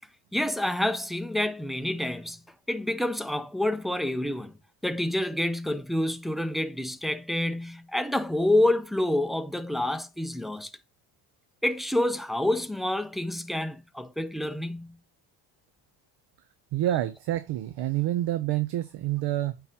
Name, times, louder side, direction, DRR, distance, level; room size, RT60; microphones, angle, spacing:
voice 1, 0.3-4.5 4.8-10.7 11.6-15.0, left 1 dB, ahead, 0.4 m, -28 dB
voice 2, 16.7-19.6, right 14 dB, 65° right, 0.6 m, -28 dB
8.7 x 3.9 x 2.8 m
cardioid pair, 90°, 43 cm